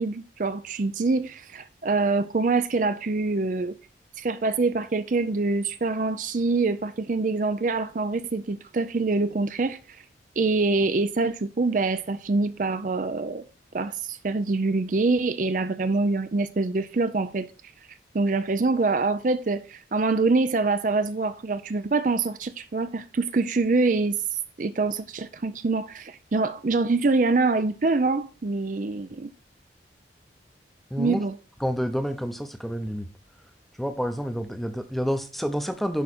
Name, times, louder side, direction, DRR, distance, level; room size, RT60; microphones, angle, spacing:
voice 1, 0.0-3.8 4.2-9.8 10.4-13.4 13.7-17.5 18.1-24.2 24.6-29.3 31.0-31.4, right 3 dB, 45° right, 0.5 m, -25 dB
voice 2, 30.9-31.2 31.6-33.1 33.8-36.0, equal, ahead, 0.7 m, -29 dB
11.0 x 5.0 x 4.2 m
head